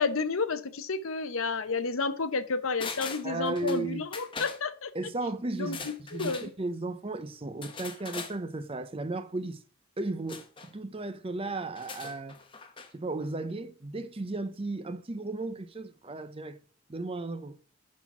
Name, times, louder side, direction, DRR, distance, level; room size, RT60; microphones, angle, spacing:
voice 1, 0.0-4.9 5.6-6.5, left 4 dB, 65° left, 0.8 m, -31 dB
sound 1, 2.8-3.8 4.1-4.6 5.6-6.5 7.6-8.4 10.3-10.7 11.7-12.9 13.2-13.3, left 5 dB, 25° left, 0.9 m, -41 dB
voice 2, 3.2-4.0 4.9-9.6 10.0-12.4 12.9-16.6 16.9-17.6, right 2 dB, 25° right, 0.6 m, -35 dB
10.5 x 4.1 x 5.8 m
head